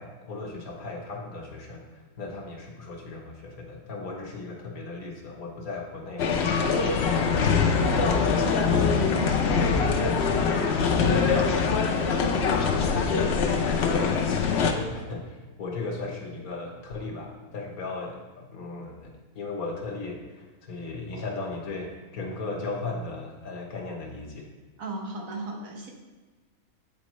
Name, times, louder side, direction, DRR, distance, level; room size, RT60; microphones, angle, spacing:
voice 1, 0.0-6.3 6.7-14.3 14.6-24.5, left 3 dB, 80° left, 1 dB, 1.6 m, -37 dB
sound 1, 6.2-14.7, left 5 dB, 60° left, 0.8 m, -23 dB
voice 2, 24.8-25.9, right 2 dB, 70° right, 0 dB, 1.4 m, -35 dB
8.6 x 4.4 x 3.1 m, 1.3 s
omnidirectional pair, 1.5 m